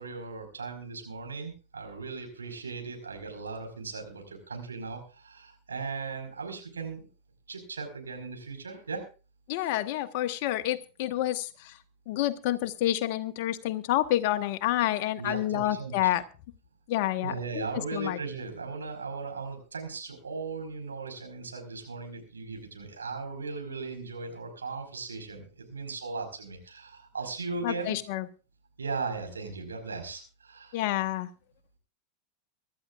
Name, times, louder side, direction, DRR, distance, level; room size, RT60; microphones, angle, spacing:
voice 1, 0.0-7.1 7.5-9.0 15.2-16.0 17.2-28.0 28.8-30.7, right 4 dB, 85° right, 4 dB, 4.9 m, -37 dB
voice 2, 9.5-11.8 12.1-16.2 16.9-18.2 27.6-28.3 30.7-31.3, left 14 dB, 55° left, 9 dB, 1.4 m, -29 dB
24.0 x 12.5 x 2.5 m, 0.34 s
figure-of-eight pair, 85°, 0 cm